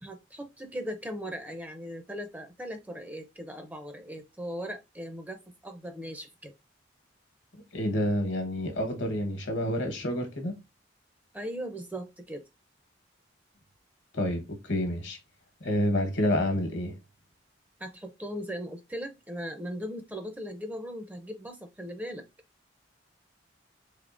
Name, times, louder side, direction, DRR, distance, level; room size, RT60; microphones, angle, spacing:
voice 1, 0.0-6.5 11.3-12.4 17.8-22.2, equal, 10° right, 0.4 m, -38 dB
voice 2, 7.7-10.5 14.1-15.2 15.6-16.9, equal, 70° left, 1.0 m, -28 dB
3.6 x 3.5 x 2.4 m
head